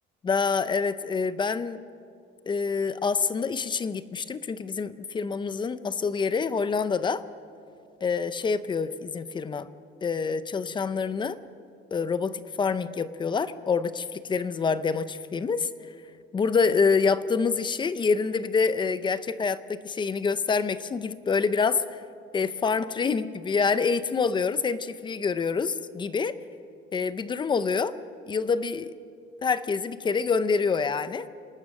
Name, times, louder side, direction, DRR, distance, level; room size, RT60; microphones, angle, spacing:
voice 1, 0.2-1.8 2.5-7.2 8.0-9.7 10.0-11.4 11.9-15.7 16.3-21.8 22.3-26.4 26.9-27.9 28.3-28.9 29.4-31.3, left 5 dB, 20° left, 14 dB, 0.6 m, -26 dB
27.0 x 19.0 x 6.5 m, 2.5 s
cardioid pair, 165°, 21 cm